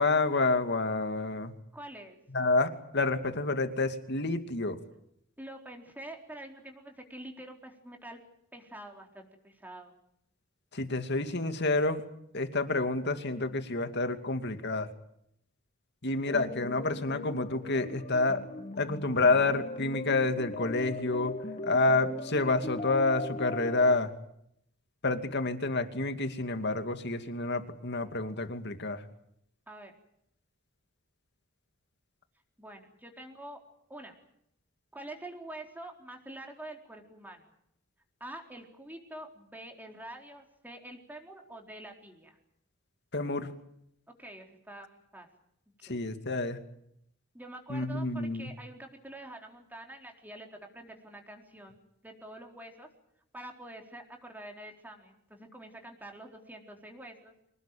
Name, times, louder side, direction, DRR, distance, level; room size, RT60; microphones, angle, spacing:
voice 1, 0.0-1.5 2.3-4.8 10.7-12.0 12.3-14.9 16.0-18.4 18.8-21.3 21.6-24.1 25.0-29.0 43.1-43.5 45.9-46.6 47.7-48.5, left 3 dB, 55° left, 8 dB, 2.5 m, -28 dB
voice 2, 1.7-2.2 5.4-8.2 8.5-10.0 29.7-29.9 32.6-33.6 33.9-34.1 34.9-37.5 38.2-42.4 44.1-45.3 45.8-46.0 47.3-52.9 53.3-57.4, right 1 dB, 10° right, 2 dB, 4.1 m, -46 dB
sound 1, 16.3-24.0, left 2 dB, 35° left, 1.7 m, -39 dB
26.0 x 19.5 x 9.1 m, 0.74 s
head